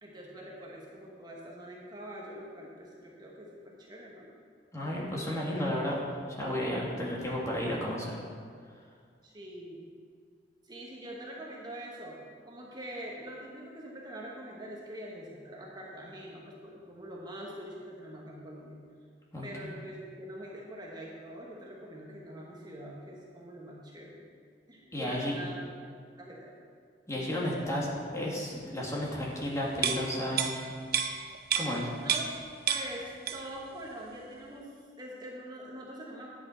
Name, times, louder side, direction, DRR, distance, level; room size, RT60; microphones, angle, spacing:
voice 1, 0.0-4.3 9.2-9.9 10.6-12.2 12.4-18.8 19.4-24.2 24.7-25.6 26.2-26.5 31.9-32.3 32.7-36.3, right 1 dB, 25° right, -3 dB, 1.2 m, -44 dB
voice 2, 4.7-6.0 6.3-8.2 19.3-19.7 24.9-25.4 27.1-27.9 28.1-30.5 31.6-31.9, left 1 dB, 20° left, -4 dB, 1.9 m, -33 dB
sound 1, 29.8-32.4 32.7-33.6 34.0-34.1, right 8 dB, 60° right, 0.6 m, -31 dB
10.5 x 8.5 x 4.4 m, 2.1 s
head